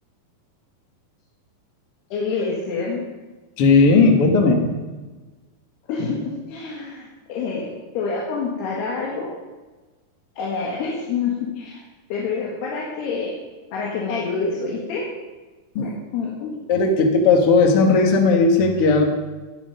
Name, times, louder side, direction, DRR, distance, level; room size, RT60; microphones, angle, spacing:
voice 1, 2.1-3.0 5.9-7.7 8.0-9.3 10.4-11.8 12.1-13.3 13.7-15.1 15.8-16.6, left 4 dB, 80° left, -3 dB, 3.7 m, -27 dB
voice 2, 3.6-4.8 15.7-15.9 16.7-19.1, left 3 dB, 60° left, 3 dB, 1.5 m, -16 dB
12.5 x 11.5 x 5.4 m, 1.3 s
omnidirectional pair, 4.7 m